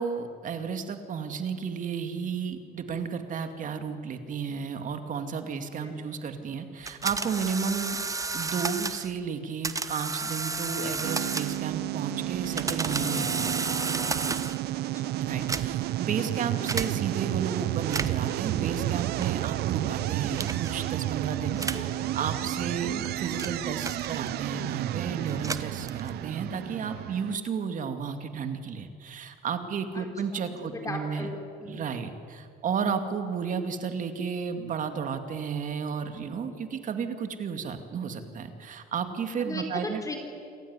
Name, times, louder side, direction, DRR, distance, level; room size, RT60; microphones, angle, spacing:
voice 1, 0.0-8.1 8.3-13.7 15.1-31.3 31.6-40.0, right 6 dB, 50° right, 8 dB, 2.4 m, -33 dB
sound 1, 6.9-9.1 9.6-11.8 12.3-14.7 15.3-16.0 16.7-16.9 17.8-18.3 19.2-19.5 20.4-20.8 21.6-21.9 22.7-24.5 25.2-26.3, right 4 dB, 20° right, 1.0 m, -32 dB
sound 2, 11.0-27.4, right 16 dB, 70° right, 0.6 m, -31 dB
voice 2, 21.7-22.2 22.8-23.0 30.0-30.1 30.3-31.8 39.5-40.2, left 1 dB, 20° left, 4 dB, 3.8 m, -38 dB
27.0 x 15.0 x 9.8 m, 2.3 s
cardioid pair, 110°, 17 cm